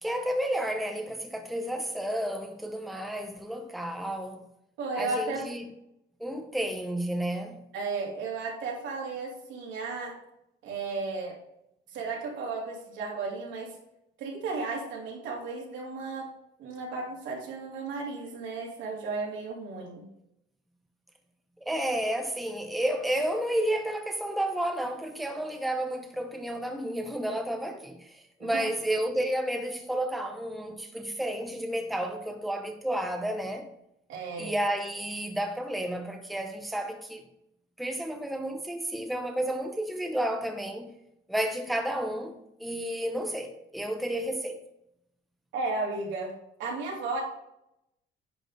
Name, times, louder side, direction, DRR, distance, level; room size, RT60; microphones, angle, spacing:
voice 1, 0.0-4.4 5.0-5.7 6.2-7.6 21.6-33.7 34.4-37.2 37.8-41.0 41.3-44.6, right 1 dB, ahead, 0.7 m, -31 dB
voice 2, 4.8-5.4 7.7-10.1 10.6-11.3 11.9-13.7 14.2-16.3 16.6-20.0 28.4-28.7 34.1-34.5 45.5-46.3 46.6-47.2, right 3 dB, 85° right, 3.1 m, -34 dB
10.0 x 4.2 x 5.0 m
cardioid pair, 160°, 19 cm